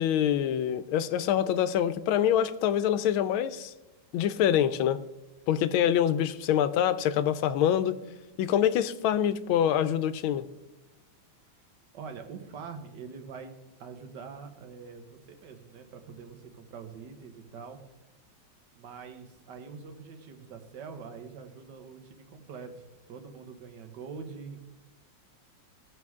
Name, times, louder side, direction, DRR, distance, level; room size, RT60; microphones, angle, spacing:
voice 1, 0.0-3.7 4.1-5.0 5.5-7.9 8.4-10.5, left 10 dB, 80° left, 13 dB, 1.4 m, -25 dB
voice 2, 11.9-17.8 18.7-24.6, right 5 dB, 60° right, 6 dB, 1.7 m, -44 dB
17.0 x 6.3 x 3.6 m, 1.0 s
omnidirectional pair, 2.3 m